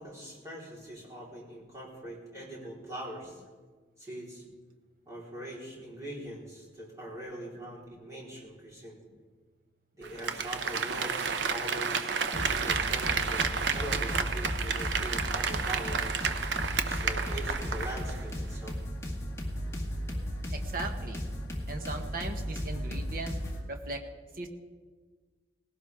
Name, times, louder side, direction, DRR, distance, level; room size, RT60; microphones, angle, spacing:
voice 1, 0.0-3.4 4.0-4.4 5.1-9.0 10.0-13.4 13.7-16.1 16.8-18.8, right 1 dB, 20° right, -6 dB, 4.2 m, -42 dB
Applause, 10.0-18.2 18.5-18.6, right 5 dB, 75° right, 0.8 m, -31 dB
sound 1, 12.3-23.6, equal, 15° left, 1.9 m, -35 dB
voice 2, 20.5-21.2 21.7-23.4 23.7-24.0 24.3-24.5, right 2 dB, 50° right, 5 dB, 1.2 m, -38 dB
19.0 x 17.0 x 3.6 m, 1.5 s
head